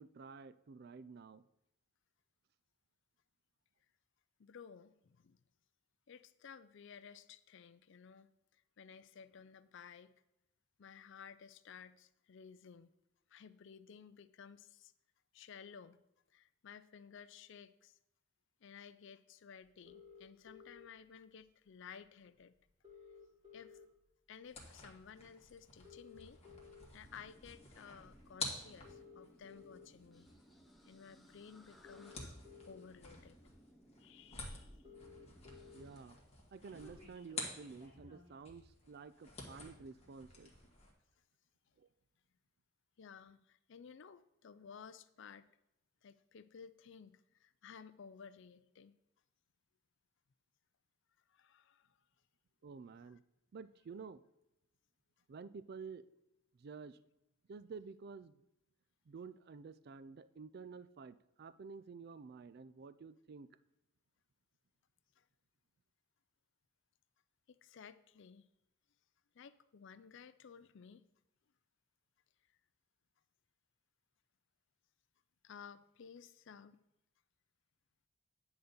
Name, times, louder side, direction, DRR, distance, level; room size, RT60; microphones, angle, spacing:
voice 1, 0.0-1.4 35.7-36.2 36.5-40.5 41.8-41.9 52.6-53.2 53.5-54.2 55.3-56.1 56.6-57.0 57.5-58.4 59.1-63.5, right 5 dB, 45° right, 15 dB, 0.3 m, -51 dB
voice 2, 4.4-5.4 6.1-10.1 10.8-12.9 13.3-14.9 15.3-16.0 16.3-18.0 18.6-22.5 23.5-23.8 24.3-26.4 26.9-30.3 30.8-32.3 32.7-33.4 34.0-34.8 43.0-45.5 46.0-49.0 51.3-52.0 53.1-53.2 65.2-65.3 67.5-68.5 69.3-71.0 75.4-76.8, left 6 dB, 55° left, 14 dB, 0.4 m, -56 dB
sound 1, 19.9-20.9 22.0-22.1 22.4-22.5 22.7-24.1 24.6-24.8 25.7-26.8 27.6-27.8 28.7-29.9 31.1-31.2 31.7-32.8 33.5-33.6 33.9-34.0 34.3-34.4 34.5-35.8 36.2-38.3, left 5 dB, 30° right, 2.3 m, -57 dB
sound 2, 24.4-38.1 38.4-40.9, left 3 dB, 30° left, 1.6 m, -50 dB
sound 3, 27.0-36.0, equal, ahead, 0.6 m, -64 dB
10.0 x 4.0 x 6.7 m, 0.88 s
head